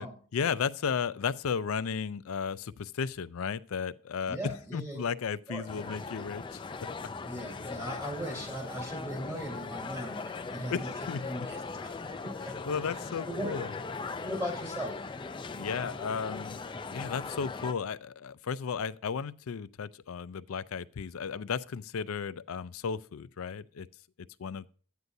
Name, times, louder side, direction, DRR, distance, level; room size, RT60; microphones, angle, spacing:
voice 1, 0.0-6.6 10.7-11.5 12.7-13.7 15.5-16.6 16.9-23.9 24.4-24.7, left 6 dB, 75° left, 0.5 m, -34 dB
voice 2, 4.3-5.0 5.5-5.6 7.2-10.9 11.2-12.9 13.2-13.6 14.2-15.0, equal, 15° right, 3.4 m, -38 dB
sound 1, 5.7-17.7, left 4 dB, 20° left, 0.5 m, -39 dB
12.5 x 9.4 x 2.7 m
head